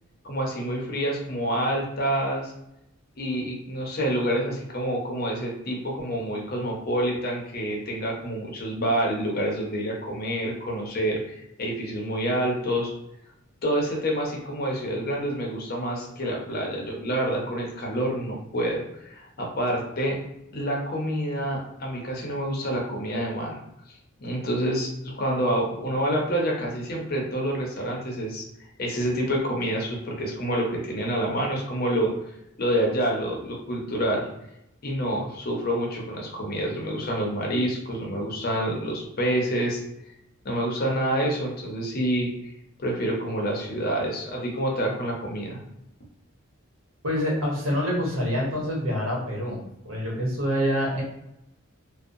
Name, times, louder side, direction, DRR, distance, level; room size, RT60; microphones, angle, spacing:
voice 1, 0.2-2.5 3.2-12.9 13.6-20.2 20.5-23.6 24.2-28.4 28.8-32.1 32.6-34.3 34.8-39.8 40.4-42.5 42.8-45.6, right 1 dB, 45° left, -1 dB, 0.7 m, -27 dB
voice 2, 47.0-51.0, equal, 85° right, -3 dB, 1.0 m, -26 dB
2.7 x 2.1 x 2.5 m, 0.82 s
head